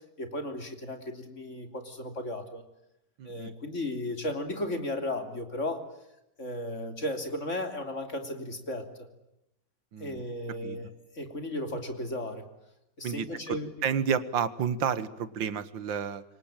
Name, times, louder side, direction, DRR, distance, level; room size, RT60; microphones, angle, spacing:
voice 1, 0.2-2.6 3.2-5.8 6.4-8.9 10.0-10.9 11.1-12.5 13.0-13.7, left 1 dB, 40° left, 6 dB, 3.5 m, -35 dB
voice 2, 3.2-3.5 9.9-10.2 10.6-10.8 13.0-16.2, right 7 dB, 90° right, 15 dB, 2.1 m, -31 dB
27.5 x 24.0 x 9.0 m, 0.86 s
omnidirectional pair, 2.0 m